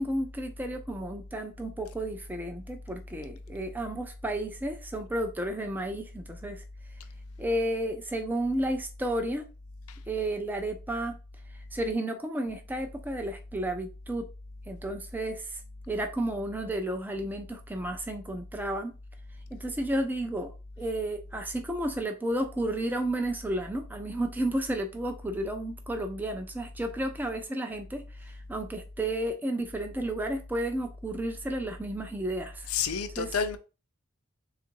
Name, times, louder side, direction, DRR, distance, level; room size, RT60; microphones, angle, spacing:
voice 1, 0.0-6.6 7.4-9.4 10.1-11.2 11.5-14.3 14.7-15.6 15.9-18.9 19.5-32.7 33.2-33.3, right 1 dB, 10° right, 0.3 m, -32 dB
voice 2, 32.7-33.6, left 6 dB, 85° left, 0.6 m, -29 dB
3.7 x 2.4 x 4.4 m
head